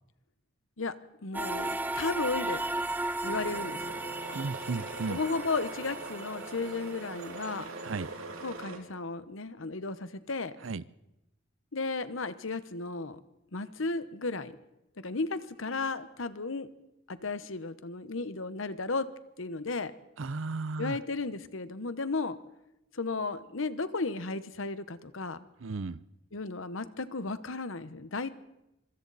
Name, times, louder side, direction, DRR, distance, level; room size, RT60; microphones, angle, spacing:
voice 1, 1.2-2.6 3.2-4.0 5.1-7.7 8.4-10.5 11.7-13.2 13.5-14.5 15.0-16.7 17.1-19.1 19.4-19.9 20.8-22.4 22.9-25.4 26.3-28.3, left 3 dB, 70° left, 13 dB, 1.1 m, -34 dB
sound 1, 1.3-7.6, right 2 dB, 10° right, 0.6 m, -36 dB
sound 2, 3.2-8.8, right 3 dB, 85° right, 2.6 m, -42 dB
voice 2, 4.3-5.2 7.8-8.1 10.6-10.8 20.2-21.0 25.6-26.0, right 3 dB, 65° right, 18 dB, 0.6 m, -34 dB
25.0 x 24.5 x 4.2 m, 0.91 s
head